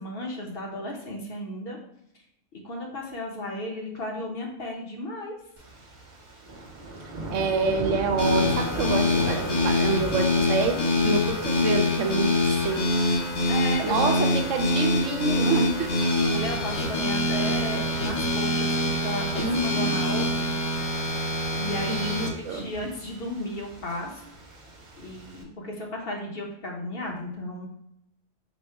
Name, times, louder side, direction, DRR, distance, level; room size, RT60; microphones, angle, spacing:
voice 1, 0.0-1.8 2.6-5.3 13.5-14.1 16.2-20.6 21.5-24.2 25.0-27.7, left 1 dB, 55° left, 0 dB, 0.9 m, -34 dB
sound 1, 5.6-25.4, right 2 dB, 45° right, 0.7 m, -40 dB
voice 2, 7.3-13.1 13.8-16.0 19.3-19.9 21.9-22.6, right 4 dB, 80° right, 5 dB, 0.9 m, -27 dB
sound 2, 8.2-22.3, left 1 dB, 75° left, 1.4 m, -25 dB
4.2 x 2.1 x 4.5 m, 0.80 s
omnidirectional pair, 1.3 m